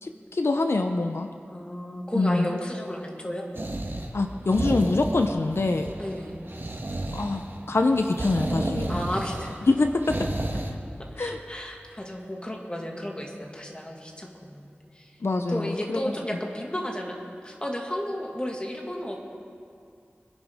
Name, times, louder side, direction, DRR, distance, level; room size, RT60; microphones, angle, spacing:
voice 1, 0.0-1.3 2.1-2.5 4.1-5.9 7.1-9.0 9.7-9.9 10.5-10.6 11.2-11.4 15.2-16.0, left 3 dB, 85° left, 5 dB, 0.7 m, -25 dB
voice 2, 1.5-3.5 6.0-6.4 8.9-9.6 11.0-14.7 15.0-15.1 15.5-17.2 17.4-19.2, equal, 25° left, 0 dB, 2.1 m, -33 dB
sound 1, 3.5-10.7, right 1 dB, 60° right, 1.4 m, -32 dB
25.0 x 10.5 x 3.6 m, 2.3 s
wide cardioid pair, 60°, 4 cm